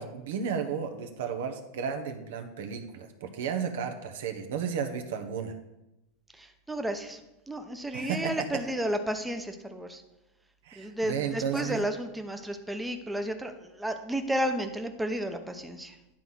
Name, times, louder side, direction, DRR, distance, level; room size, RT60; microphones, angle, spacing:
voice 1, 0.0-5.5 7.9-8.3 10.6-11.8, right 7 dB, 80° right, 6 dB, 1.1 m, -33 dB
voice 2, 6.4-7.2 7.5-10.0 10.8-16.0, right 1 dB, 5° right, 6 dB, 0.8 m, -32 dB
10.5 x 3.9 x 6.1 m, 0.95 s
supercardioid pair, 125°, 0 cm